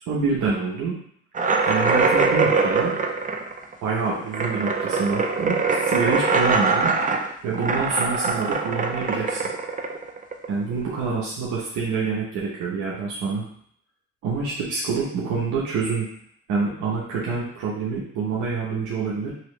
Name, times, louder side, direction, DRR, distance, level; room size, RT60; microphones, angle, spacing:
voice 1, 0.1-0.9 1.7-2.9 3.8-6.9 7.4-9.4 10.5-13.5 14.2-16.1 16.5-19.3, right 4 dB, 80° right, -6 dB, 0.9 m, -26 dB
sound 1, 1.3-10.7, right 4 dB, 25° right, 0.4 m, -23 dB
3.1 x 2.9 x 3.1 m, 0.63 s
cardioid pair, 90°, 30 cm